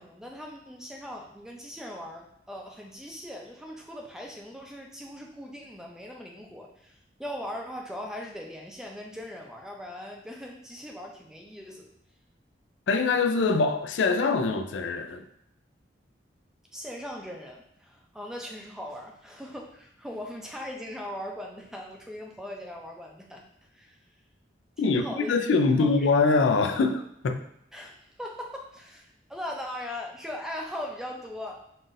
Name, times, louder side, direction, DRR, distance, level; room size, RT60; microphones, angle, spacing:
voice 1, 0.0-11.9 16.7-23.4 23.7-24.0 24.8-25.5 25.8-26.1 27.7-31.6, left 1 dB, 5° right, 0 dB, 0.5 m, -40 dB
voice 2, 12.9-15.3 24.8-27.4, left 4 dB, 90° left, 7 dB, 0.4 m, -24 dB
5.5 x 2.6 x 2.6 m, 0.74 s
head